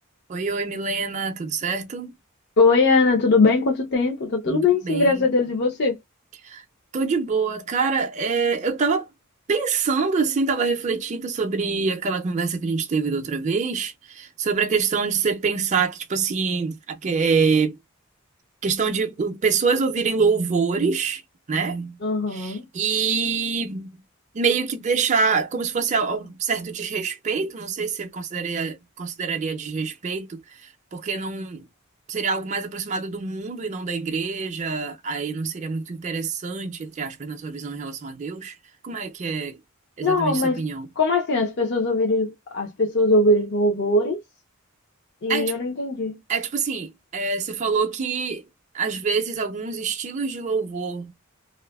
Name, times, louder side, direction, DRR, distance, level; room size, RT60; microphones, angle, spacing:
voice 1, 0.3-2.2 4.5-5.1 6.4-6.6 6.9-9.1 9.5-17.8 18.6-21.2 21.5-22.0 22.3-23.9 24.3-31.7 32.1-38.6 38.8-39.6 40.0-40.9 45.3-45.5 46.3-48.5 48.7-51.1, right 5 dB, 35° right, 0.4 m, -25 dB
voice 2, 2.6-6.0 22.0-22.6 40.0-40.6 41.0-44.2 45.2-46.2, left 3 dB, 55° left, 0.6 m, -21 dB
2.5 x 2.4 x 2.2 m
head